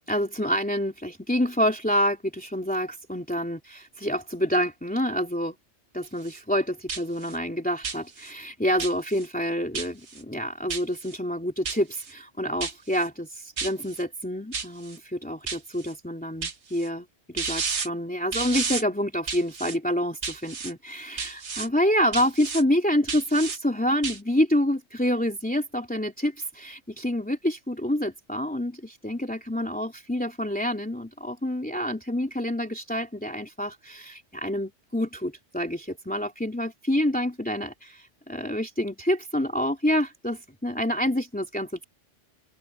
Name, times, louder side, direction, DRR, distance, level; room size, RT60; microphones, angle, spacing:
voice 1, 0.1-5.5 5.9-41.9, equal, 5° left, 3.2 m, -27 dB
sound 1, 6.0-6.4 6.9-7.4 7.8-8.3 8.8-9.3 9.7-10.2 10.7-11.2 11.6-12.1 12.6-13.1 13.6-14.0 14.5-15.0 15.5-15.9 16.4-16.9 17.4-17.9 18.3-18.8 19.3-19.8 20.2-20.7 21.2-21.7 22.1-22.6 23.1-23.6 24.0-24.2, right 5 dB, 70° right, 1.7 m, -32 dB
omnidirectional pair, 1.2 m